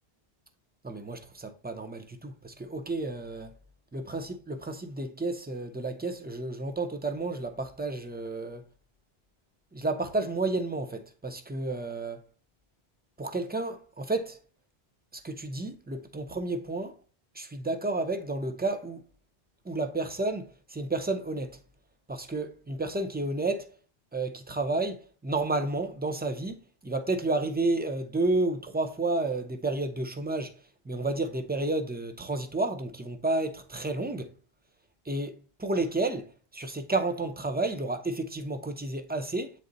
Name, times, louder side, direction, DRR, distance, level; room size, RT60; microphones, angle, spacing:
voice 1, 0.8-3.5 3.9-8.6 9.7-12.2 13.2-14.4 15.2-16.9 17.4-19.0 19.7-21.6 22.1-23.7 24.1-30.5 30.9-34.3 35.1-35.3 35.6-39.5, right 2 dB, 10° right, 0.5 m, -31 dB
7.7 x 4.0 x 3.9 m
omnidirectional pair, 1.1 m